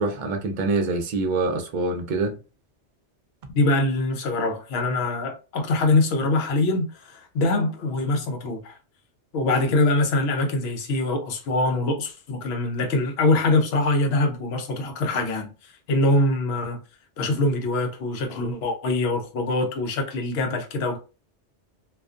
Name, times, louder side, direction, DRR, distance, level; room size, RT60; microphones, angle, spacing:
voice 1, 0.0-2.4, right 3 dB, 60° right, 0.5 m, -25 dB
voice 2, 3.5-8.7 9.3-15.5 15.9-16.8 17.2-21.0, left 2 dB, 70° left, 0.9 m, -23 dB
2.4 x 2.2 x 2.4 m
omnidirectional pair, 1.2 m